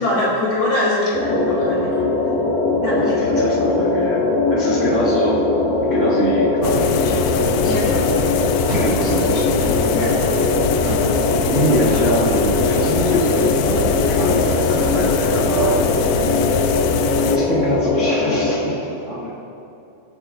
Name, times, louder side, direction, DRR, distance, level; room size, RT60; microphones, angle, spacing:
voice 1, 0.0-1.9 2.8-3.1 7.7-8.1 10.0-10.1, left 1 dB, 70° left, -11 dB, 4.1 m, -22 dB
sound 1, 1.1-18.5, left 2 dB, 55° left, 2.5 m, -20 dB
voice 2, 3.0-5.4 5.8-7.3 7.6-8.0 8.3-8.4 8.7-9.5 9.8-10.1 11.5-16.7 17.3-19.3, right 1 dB, 75° right, -7 dB, 0.6 m, -24 dB
sound 2, 6.6-17.4, left 8 dB, 90° left, 2.0 m, -24 dB
sound 3, 8.6-9.0 9.6-9.9 10.8-11.2 11.4-11.6 11.9-12.2, right 2 dB, 50° right, 4.4 m, -29 dB
24.5 x 9.3 x 2.5 m, 2.8 s
omnidirectional pair, 4.6 m